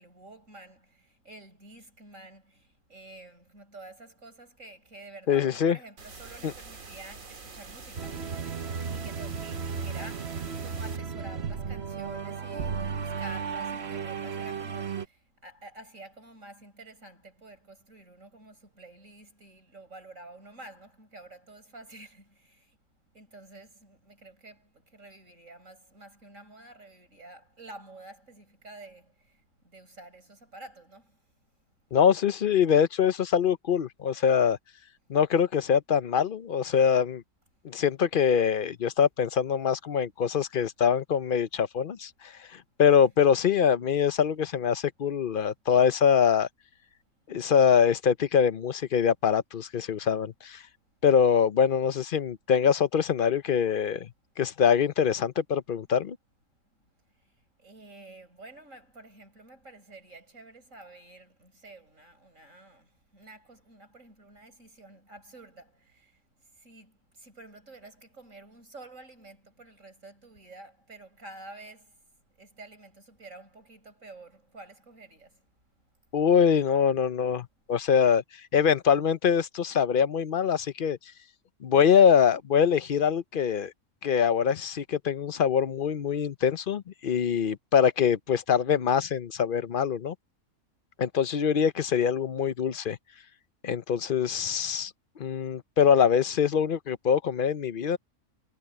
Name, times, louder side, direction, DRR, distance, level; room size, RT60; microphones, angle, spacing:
voice 1, 0.0-8.4 8.9-22.8 23.1-31.5 50.9-51.0 56.8-72.1 72.4-75.5, right 2 dB, 75° right, 7.9 m, -49 dB
voice 2, 5.3-5.8 6.4-6.5 31.9-34.6 35.1-37.2 37.6-46.5 47.3-50.6 51.0-54.1 54.4-56.2 76.1-78.2 78.5-81.0 81.6-83.7 84.0-90.1 91.0-93.0 93.6-94.9 95.2-98.0, left 7 dB, 50° left, 0.8 m, -24 dB
sound 1, 6.0-11.0, right 4 dB, 90° right, 2.6 m, -46 dB
sound 2, 8.0-15.1, right 6 dB, 55° right, 1.3 m, -34 dB
omnidirectional pair, 1.4 m